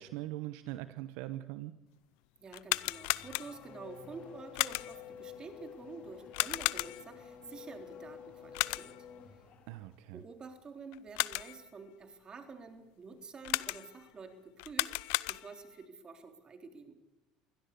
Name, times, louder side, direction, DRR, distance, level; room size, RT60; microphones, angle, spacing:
voice 1, 0.0-1.7 9.7-10.2, right 15 dB, 75° right, 12 dB, 1.0 m, -41 dB
voice 2, 2.4-8.9 10.1-16.9, right 4 dB, 30° right, 6 dB, 3.9 m, -49 dB
sound 1, 2.5-3.8 4.5-5.1 6.3-7.2 8.5-9.1 10.9-11.7 13.4-14.1 14.6-15.7, left 24 dB, 75° left, 0.6 m, -34 dB
Race car auto racing / Accelerating revving vroom, 2.7-9.9, left 7 dB, 50° left, 4.4 m, -51 dB
23.5 x 17.0 x 6.9 m, 1.0 s
supercardioid pair, 90°, 3 cm